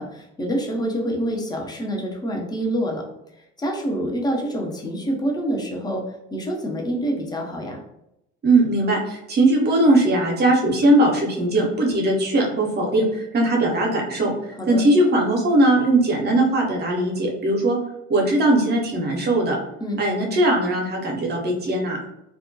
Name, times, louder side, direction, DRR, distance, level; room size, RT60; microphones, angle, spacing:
voice 1, 0.0-3.0 3.6-6.0 6.3-7.8 14.6-14.8 19.8-20.0, right 1 dB, 10° left, 0 dB, 0.5 m, -26 dB
voice 2, 8.4-14.3 14.7-17.8 18.1-19.6 20.0-22.0, right 1 dB, 30° right, -1 dB, 0.6 m, -19 dB
2.3 x 2.1 x 2.6 m, 0.84 s
figure-of-eight pair, 55°, 36 cm